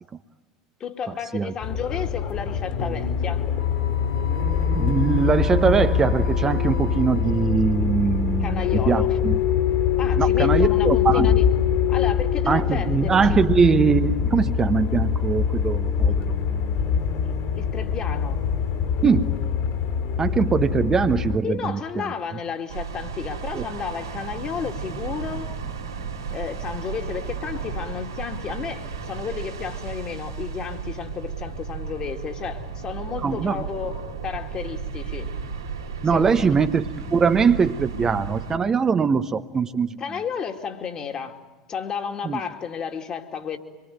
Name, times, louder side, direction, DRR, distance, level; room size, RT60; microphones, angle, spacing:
voice 1, 0.8-3.5 8.4-9.1 10.0-11.4 11.9-13.4 17.2-18.4 21.4-25.6 26.3-35.3 36.1-36.6 40.0-41.4 41.7-43.6, left 7 dB, 35° left, 2.6 m, -32 dB
sound 1, 1.6-21.4, left 7 dB, 55° left, 3.5 m, -23 dB
Wind instrument woodwind instrument, 3.5-7.7, left 7 dB, 80° left, 4.3 m, -41 dB
voice 2, 4.7-9.4 10.2-11.4 12.5-16.8 19.0-19.4 20.2-22.1 23.5-23.6 33.2-33.7 36.0-40.0 42.2-42.4, right 5 dB, 25° right, 1.0 m, -22 dB
sound 2, 22.7-38.6, right 5 dB, 80° right, 3.1 m, -34 dB
25.5 x 23.5 x 9.4 m
figure-of-eight pair, 75°, 2 cm